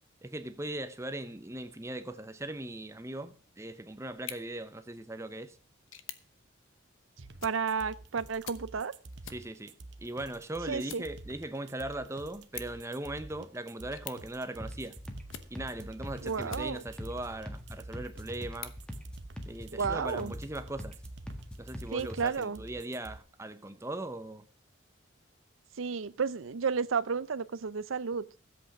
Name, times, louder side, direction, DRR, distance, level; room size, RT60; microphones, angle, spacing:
voice 1, 0.2-5.6 9.3-15.0 15.5-18.7 19.5-21.0 21.6-24.4, right 1 dB, 15° right, 0.8 m, -39 dB
sound 1, 4.1-17.1 17.6-19.7, left 10 dB, 85° left, 1.0 m, -51 dB
sound 2, 7.2-23.2, right 2 dB, 60° right, 0.9 m, -49 dB
voice 2, 7.4-8.9 10.7-11.0 16.2-16.8 19.7-20.3 21.9-22.6 25.8-28.2, right 5 dB, 85° right, 0.6 m, -32 dB
sound 3, 14.6-22.2, equal, 5° left, 1.7 m, -43 dB
13.5 x 8.2 x 5.9 m
head